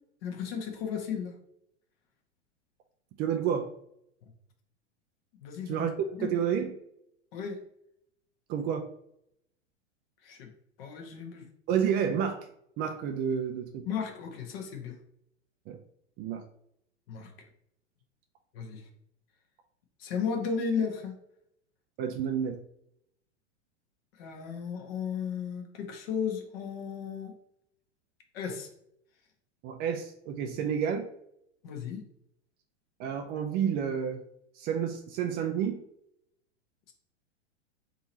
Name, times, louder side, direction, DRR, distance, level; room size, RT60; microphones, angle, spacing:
voice 1, 0.2-1.3 5.4-5.9 6.2-6.3 7.3-7.6 10.2-10.5 10.8-11.4 13.9-14.9 17.1-17.3 18.5-18.8 20.0-21.2 24.2-27.3 28.3-28.7 31.6-32.0, left 6 dB, 55° left, 3 dB, 1.2 m, -34 dB
voice 2, 3.2-3.7 5.7-5.9 6.2-6.8 8.5-8.9 11.7-12.5 12.8-13.9 15.7-15.8 16.2-16.4 22.0-22.6 29.6-31.1 33.0-34.2 34.6-35.8, right 8 dB, 30° right, 5 dB, 0.4 m, -30 dB
3.8 x 2.9 x 4.2 m, 0.74 s
hypercardioid pair, 100°, 35 cm